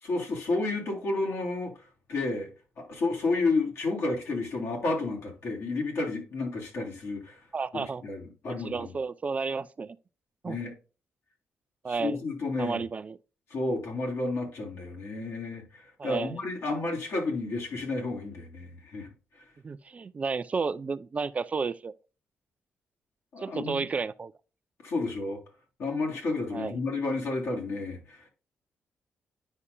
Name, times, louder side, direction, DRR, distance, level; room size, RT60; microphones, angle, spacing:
voice 1, 0.0-1.7 2.1-2.5 2.8-7.3 7.7-8.9 10.4-10.7 11.9-12.8 13.5-19.1 23.3-23.8 24.8-25.4 25.8-28.3, left 3 dB, 70° left, 3.1 m, -31 dB
voice 2, 7.5-8.0 8.5-10.0 10.4-10.6 11.8-12.2 12.6-13.2 16.0-16.4 19.6-21.9 23.4-24.3 26.5-26.8, right 4 dB, 30° right, 0.4 m, -32 dB
9.8 x 5.5 x 2.2 m
cardioid pair, 115°, 5 cm